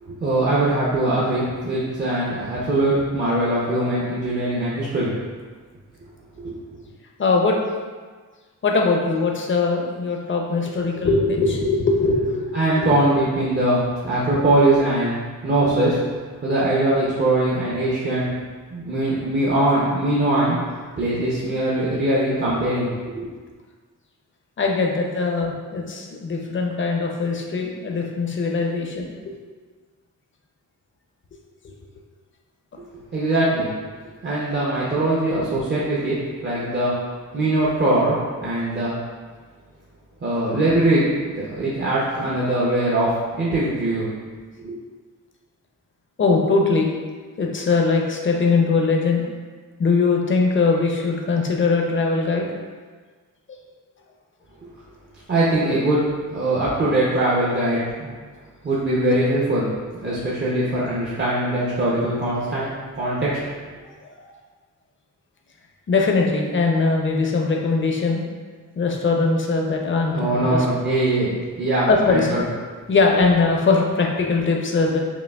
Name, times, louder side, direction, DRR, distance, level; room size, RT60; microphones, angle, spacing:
voice 1, 0.0-5.1 6.4-6.5 12.5-16.0 16.4-18.3 18.7-20.6 21.0-23.3 33.1-33.7 34.2-36.9 37.3-38.9 40.2-41.0 41.3-43.1 43.4-44.1 44.6-44.8 55.3-58.1 58.6-59.7 60.0-62.7 62.9-63.4 70.1-71.3 71.6-72.4, right 1 dB, 35° right, -7 dB, 0.6 m, -21 dB
voice 2, 7.2-7.6 8.6-12.9 24.6-29.2 46.2-46.9 47.4-49.3 49.8-52.5 53.5-53.6 62.3-62.8 63.8-63.9 65.9-68.2 68.8-70.7 71.9-72.4 72.9-75.0, left 4 dB, 40° left, 1 dB, 0.5 m, -21 dB
5.0 x 2.7 x 2.3 m, 1.5 s
wide cardioid pair, 130°, 32 cm